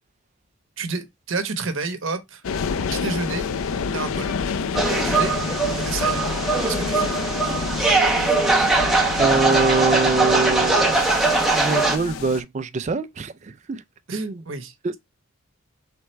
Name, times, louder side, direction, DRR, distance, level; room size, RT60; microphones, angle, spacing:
voice 1, 0.8-2.4 2.9-3.4 3.9-4.4 4.9-5.3 5.8-6.3 6.6-7.1 14.1-15.0, right 4 dB, 65° right, 0.8 m, -30 dB
sound 1, 2.4-12.4, left 5 dB, 75° left, 0.4 m, -29 dB
sound 2, 4.7-12.0, right 3 dB, ahead, 0.7 m, -21 dB
voice 2, 9.2-11.1 11.5-13.8 14.1-14.4 14.8-15.0, right 3 dB, 35° right, 0.3 m, -24 dB
4.4 x 3.4 x 3.1 m
head